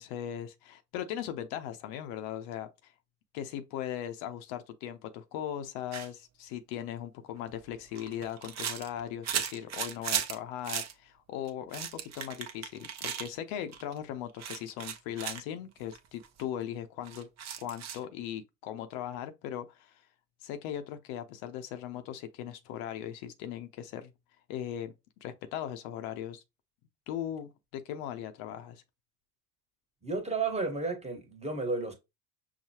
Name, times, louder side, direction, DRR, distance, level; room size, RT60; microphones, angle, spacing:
voice 1, 0.0-2.9 3.3-17.3 17.6-20.0 20.4-24.1 24.5-24.9 25.2-26.4 27.1-28.8, left 10 dB, 65° left, 0.7 m, -39 dB
sound 1, 5.9-6.1 7.4-10.4 10.6-10.9 11.5-13.3 13.7-14.0 14.4-15.4 15.9-16.0 16.2-16.4 17.0-18.0, right 8 dB, 40° right, 0.8 m, -36 dB
voice 2, 30.0-31.9, right 3 dB, 15° right, 1.3 m, -32 dB
5.7 x 2.2 x 2.8 m
hypercardioid pair, 70°, 41 cm